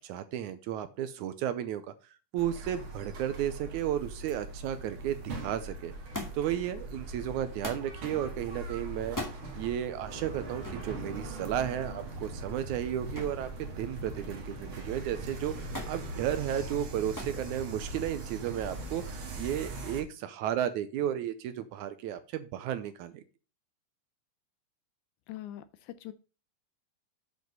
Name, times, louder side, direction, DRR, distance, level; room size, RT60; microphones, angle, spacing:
voice 1, 0.0-1.8 2.3-5.9 6.3-9.2 9.6-23.2, right 11 dB, 80° right, 12 dB, 1.8 m, -33 dB
sound 1, 2.4-20.0, right 2 dB, 50° right, 1.8 m, -41 dB
Thump thud, 6.1-6.6 7.6-7.9 9.0-9.4 10.6-10.9 13.2-13.5 13.8-14.4 15.7-16.0 17.2-17.4 18.4-18.9 19.8-19.9, left 1 dB, 10° left, 1.0 m, -39 dB
voice 2, 25.3-26.1, left 13 dB, 80° left, 13 dB, 1.8 m, -42 dB
7.9 x 5.1 x 5.2 m, 0.34 s
omnidirectional pair, 3.9 m